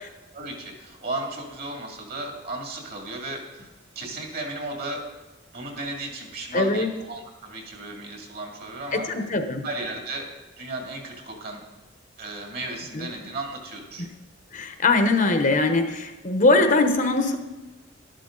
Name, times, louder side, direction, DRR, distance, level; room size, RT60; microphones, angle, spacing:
voice 1, 0.3-3.7 4.0-5.0 5.5-9.1 9.6-11.6 12.2-14.1, right 2 dB, 50° right, 1 dB, 2.4 m, -35 dB
voice 2, 6.5-6.9 8.9-9.6 12.9-13.1 14.0-14.1 14.5-17.4, left 2 dB, 40° left, 6 dB, 1.0 m, -21 dB
12.0 x 11.5 x 3.9 m, 1.1 s
head